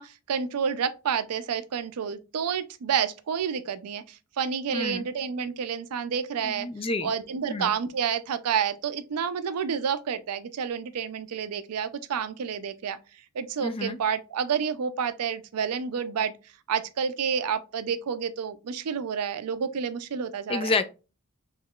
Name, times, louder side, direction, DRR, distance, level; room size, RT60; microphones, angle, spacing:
voice 1, 0.0-6.7 7.0-13.0 13.3-16.3 16.7-20.7, right 7 dB, 85° right, 0.4 m, -29 dB
voice 2, 4.7-5.1 6.4-7.1 7.5-7.7 13.6-14.0 20.5-20.8, left 3 dB, 25° left, 0.3 m, -29 dB
3.6 x 3.1 x 2.3 m
head